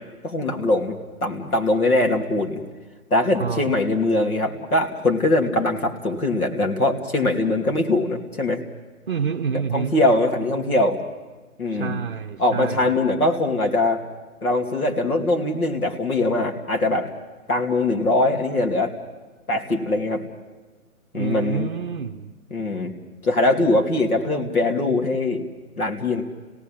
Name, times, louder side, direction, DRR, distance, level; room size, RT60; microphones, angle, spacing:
voice 1, 0.2-2.6 3.1-8.6 9.7-11.0 11.6-12.0 12.4-14.0 14.4-17.1 17.5-19.0 19.5-20.2 21.1-21.7 22.5-22.9 23.2-25.4 25.8-26.2, left 2 dB, 80° left, 2 dB, 2.8 m, -22 dB
voice 2, 3.4-3.9 9.1-10.0 11.6-13.0 21.1-22.4, right 6 dB, 40° right, 5 dB, 0.7 m, -28 dB
28.5 x 17.5 x 7.5 m, 1.3 s
figure-of-eight pair, 145°, 44 cm